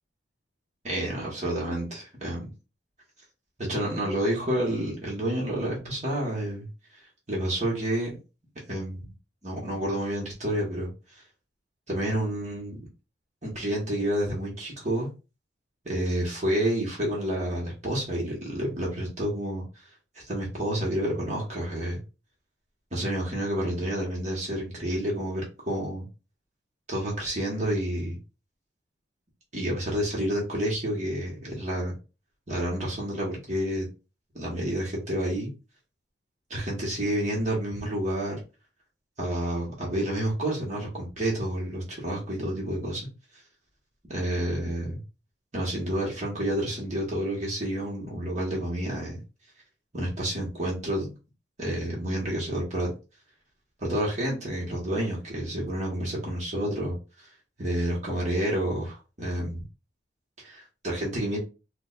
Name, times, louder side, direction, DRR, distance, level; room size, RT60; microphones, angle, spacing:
voice 1, 0.8-2.5 3.6-6.7 7.3-8.1 8.7-9.1 9.4-10.9 11.9-12.8 13.4-15.1 15.8-19.6 20.3-22.0 22.9-26.1 26.9-28.2 29.5-31.9 32.5-33.9 34.3-35.5 36.5-38.4 39.2-43.1 44.1-45.0 45.5-49.2 49.9-51.1 51.6-52.9 53.8-56.9 57.6-59.6 60.4-61.4, right 1 dB, 40° right, -3 dB, 1.3 m, -29 dB
4.9 x 2.3 x 2.5 m, 0.31 s
head